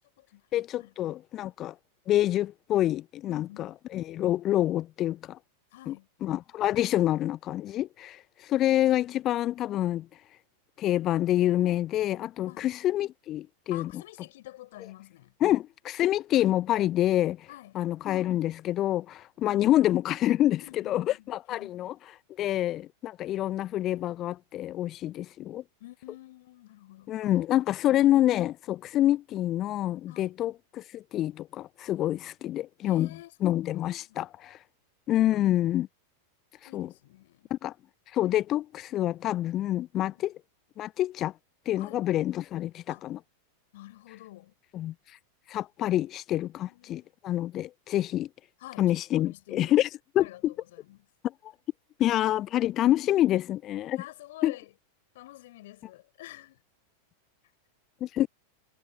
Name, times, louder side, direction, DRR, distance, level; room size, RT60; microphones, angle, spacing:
voice 1, 0.5-1.7 2.1-5.4 5.9-6.0 6.2-8.2 8.5-10.1 10.8-14.0 15.4-17.5 17.7-21.9 22.4-25.6 27.1-33.1 33.4-34.6 35.1-35.9 36.7-36.9 37.5-37.7 38.1-40.3 40.8-41.3 41.7-43.2 44.7-44.9 45.5-48.3 48.8-49.9 50.1-50.5 52.0-54.0 54.4-54.5 58.0-58.3, left 13 dB, 35° left, 0.6 m, -27 dB
voice 2, 3.3-3.7 5.7-6.1 12.5-12.7 13.7-15.3 17.5-17.8 20.6-21.2 21.5-21.7 25.8-27.4 30.1-30.3 32.8-33.6 33.9-34.3 36.6-37.5 40.1-40.2 41.8-42.0 42.9-43.1 43.7-44.5 46.7-47.1 48.6-48.9 49.1-49.8 50.2-51.0 53.9-54.7 55.1-56.6, left 16 dB, 55° left, 5.2 m, -48 dB
figure-of-eight pair, 90°, 0 cm